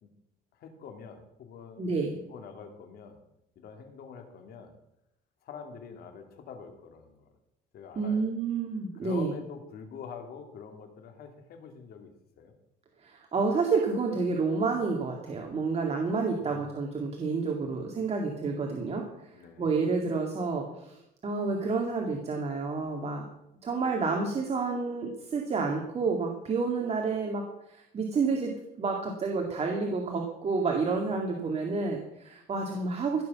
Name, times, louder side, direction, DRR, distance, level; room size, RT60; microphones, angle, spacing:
voice 1, 0.5-1.8 2.3-3.2 3.6-4.7 5.4-7.4 7.7-8.2 8.9-12.1 12.4-12.5 16.4-16.8 19.3-19.7, left 6 dB, 65° left, 5 dB, 2.7 m, -45 dB
voice 2, 1.8-2.2 8.0-9.3 13.0-19.3 19.6-23.3 23.6-33.2, right 4 dB, 40° right, 1 dB, 2.2 m, -29 dB
16.5 x 6.9 x 7.2 m, 0.84 s
cardioid pair, 110°, 17 cm